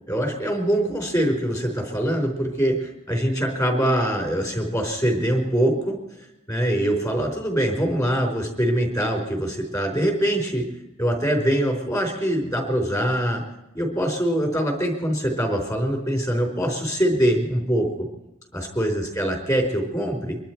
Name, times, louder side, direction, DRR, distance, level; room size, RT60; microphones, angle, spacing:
voice 1, 0.1-10.7 11.0-13.4 13.7-18.1 18.5-20.4, right 1 dB, 15° left, 3 dB, 4.2 m, -23 dB
25.0 x 12.0 x 4.6 m, 0.90 s
head